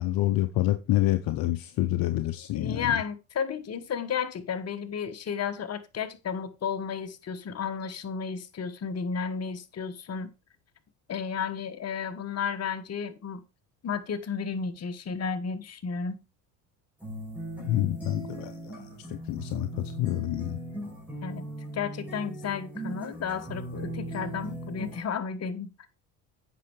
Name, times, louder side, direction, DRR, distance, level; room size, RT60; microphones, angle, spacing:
voice 1, 0.0-3.0 17.6-20.6, left 15 dB, 65° left, 0.8 m, -28 dB
voice 2, 2.5-10.3 11.1-13.4 13.8-16.2 21.2-21.4 21.7-25.7, left 6 dB, 40° left, 1.4 m, -33 dB
sound 1, 17.0-25.0, right 1 dB, 5° right, 5.1 m, -39 dB
8.4 x 5.7 x 4.8 m
hypercardioid pair, 70°, 38 cm